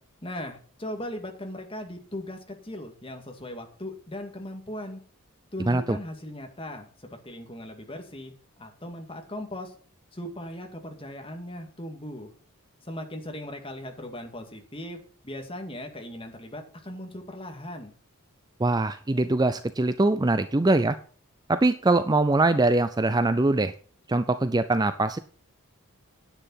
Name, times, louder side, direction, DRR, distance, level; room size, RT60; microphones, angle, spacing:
voice 1, 0.2-5.0 5.5-8.3 8.6-9.7 10.1-12.3 12.8-17.9, left 1 dB, 25° left, 4 dB, 2.2 m, -38 dB
voice 2, 5.7-6.0 18.6-21.0 21.5-23.7 24.1-25.2, right 2 dB, 20° right, 12 dB, 0.4 m, -22 dB
10.0 x 9.1 x 5.7 m, 0.42 s
head